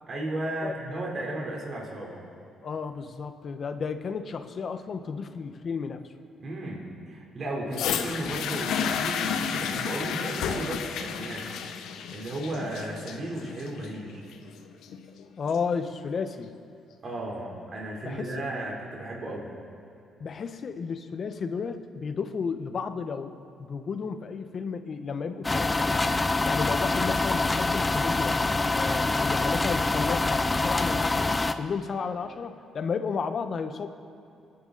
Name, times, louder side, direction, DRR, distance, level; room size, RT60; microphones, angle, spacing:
voice 1, 0.1-2.2 6.4-11.4 12.1-14.2 17.0-19.5, right 1 dB, 45° right, -2 dB, 3.8 m, -34 dB
voice 2, 0.6-1.1 2.6-6.1 7.7-7.8 15.4-16.6 18.0-18.3 20.2-26.1 26.5-28.4 28.7-33.9, left 5 dB, 50° left, 8 dB, 1.3 m, -33 dB
sound 1, 7.7-15.7 16.5-16.6, left 7 dB, 80° left, 1.0 m, -32 dB
sound 2, 25.4-31.5, left 2 dB, 20° left, 0.7 m, -25 dB
29.5 x 11.0 x 4.2 m, 2.6 s
cardioid pair, 90°, 0 cm